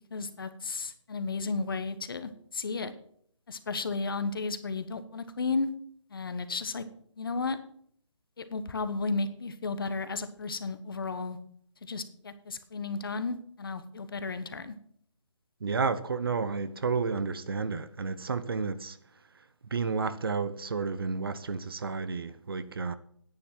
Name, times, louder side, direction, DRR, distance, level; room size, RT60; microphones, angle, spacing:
voice 1, 0.1-2.9 3.5-5.7 6.1-6.8 7.2-7.6 8.4-11.4 11.8-14.7, left 4 dB, 45° left, 1.2 m, -33 dB
voice 2, 15.6-19.0 19.7-22.9, right 5 dB, 50° right, 0.9 m, -31 dB
10.5 x 9.1 x 5.9 m
hypercardioid pair, 170°, 16 cm